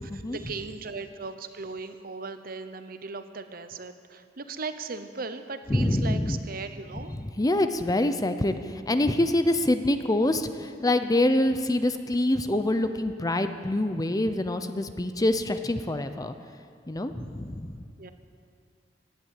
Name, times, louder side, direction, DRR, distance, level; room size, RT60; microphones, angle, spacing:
voice 1, 0.0-7.1 17.2-17.5 18.0-18.1, right 4 dB, 55° right, 9 dB, 0.9 m, -38 dB
voice 2, 5.7-6.4 7.1-8.6 8.9-16.3 16.9-17.8, left 1 dB, 20° left, 9 dB, 0.6 m, -25 dB
17.0 x 10.5 x 8.3 m, 2.3 s
head